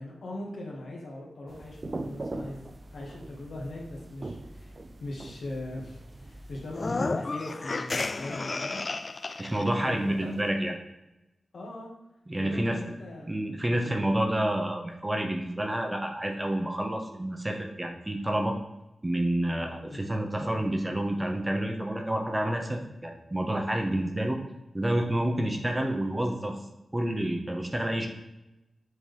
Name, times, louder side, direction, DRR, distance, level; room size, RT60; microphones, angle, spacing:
voice 1, 0.0-2.6 2.9-8.8 9.8-10.8 11.5-11.9 12.4-13.9 19.9-20.1 23.9-24.1, left 1 dB, 75° left, -2 dB, 1.8 m, -40 dB
sound 1, 1.5-6.9, right 2 dB, 40° right, 0.4 m, -41 dB
sound 2, 6.7-9.7, left 3 dB, 40° left, 0.3 m, -32 dB
voice 2, 9.4-10.7 12.3-12.8 13.3-18.6 19.0-24.4 24.7-26.5 26.9-28.1, right 1 dB, 20° right, 3 dB, 0.9 m, -29 dB
7.7 x 4.1 x 3.5 m, 0.94 s
wide cardioid pair, 80°, 0 cm